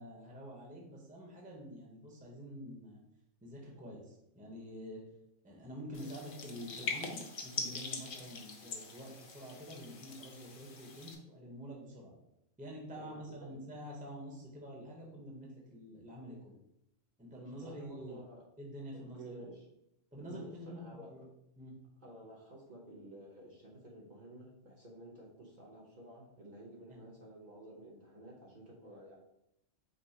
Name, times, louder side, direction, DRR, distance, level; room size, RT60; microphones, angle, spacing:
voice 1, 0.0-3.0 3.4-5.0 5.4-12.1 12.6-16.6 17.2-18.2 18.6-19.5 20.1-21.3 21.6-21.7 26.9-27.0, equal, 5° right, -2 dB, 0.8 m, -47 dB
sound 1, 5.9-11.2, left 4 dB, 50° left, 0.7 m, -43 dB
voice 2, 13.0-13.6 17.3-18.4 18.9-19.6 20.3-21.1 22.0-29.2, right 1 dB, 40° right, -4 dB, 1.0 m, -52 dB
5.4 x 2.1 x 4.2 m, 0.79 s
omnidirectional pair, 1.3 m